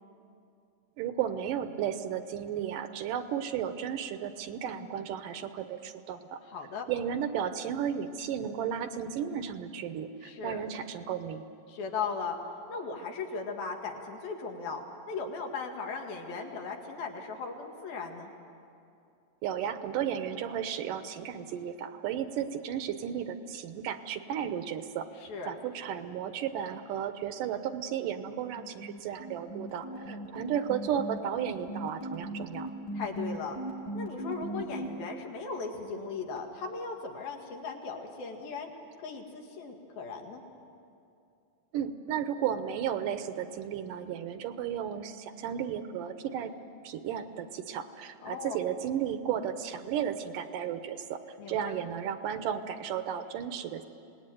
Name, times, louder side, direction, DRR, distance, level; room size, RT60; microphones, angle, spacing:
voice 1, 1.0-6.4 6.9-11.5 19.4-25.1 25.5-32.7 41.7-46.5 46.8-51.2 51.5-53.8, right 9 dB, 75° right, 9 dB, 2.3 m, -34 dB
voice 2, 6.5-6.9 10.2-10.6 11.7-12.4 12.7-14.8 15.1-18.3 25.2-25.5 29.9-30.2 32.9-33.6 33.9-38.7 39.0-40.4 48.2-48.6 51.4-51.7, left 4 dB, 85° left, 2 dB, 3.9 m, -37 dB
sound 1, 28.5-34.9, right 1 dB, 65° left, 7.2 m, -37 dB
26.5 x 19.0 x 9.3 m, 2.6 s
omnidirectional pair, 4.2 m